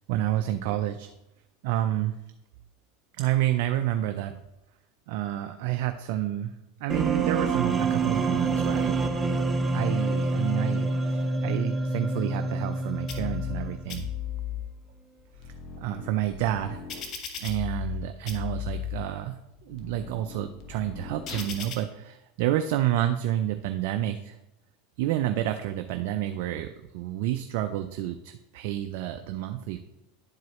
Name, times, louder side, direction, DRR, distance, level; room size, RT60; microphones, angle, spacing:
voice 1, 0.1-1.1 1.6-2.1 3.2-4.4 5.1-6.5 6.8-9.0 9.7-14.1 15.4-16.8 17.4-24.4 25.0-29.8, right 12 dB, 65° right, 7 dB, 0.4 m, -29 dB
sound 1, 6.9-13.9, right 3 dB, 15° right, 0.7 m, -27 dB
sound 2, 13.1-13.6 13.9-14.6 15.2-18.0 18.3-19.0 19.6-21.8, left 9 dB, 45° left, 1.2 m, -36 dB
10.5 x 4.7 x 3.1 m, 0.92 s
supercardioid pair, 110°, 0 cm